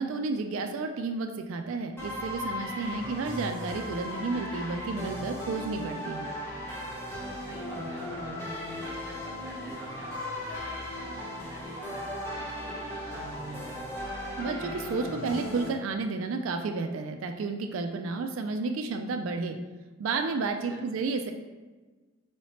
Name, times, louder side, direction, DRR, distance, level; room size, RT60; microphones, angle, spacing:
voice 1, 0.0-6.3 14.4-19.6 20.0-21.3, right 4 dB, 75° right, 5 dB, 0.3 m, -31 dB
sound 1, 2.0-15.7, left 1 dB, 10° left, 1.0 m, -37 dB
voice 2, 7.3-13.9 20.6-21.0, equal, 15° right, -5 dB, 1.0 m, -49 dB
4.2 x 3.9 x 3.2 m, 1.3 s
head